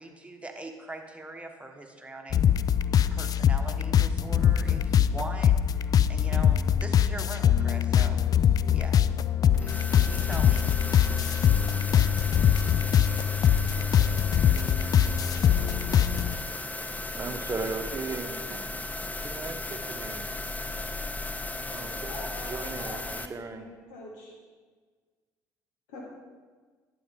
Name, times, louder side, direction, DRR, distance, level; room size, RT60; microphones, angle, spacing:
voice 1, 0.0-2.4 3.1-8.2 8.7-9.0 9.6-10.6, right 2 dB, 15° right, 3 dB, 1.6 m, -41 dB
sound 1, 2.3-16.3, left 9 dB, 45° left, 0.4 m, -23 dB
sound 2, 9.5-23.3, left 2 dB, 15° left, 0.7 m, -35 dB
voice 2, 17.1-18.8 19.2-20.3 21.7-23.7, right 3 dB, 35° right, 6 dB, 1.0 m, -37 dB
voice 3, 22.1-24.3 25.9-26.0, left 2 dB, 80° left, -2 dB, 2.1 m, -44 dB
12.0 x 7.9 x 3.8 m, 1.4 s
hypercardioid pair, 55°, 9 cm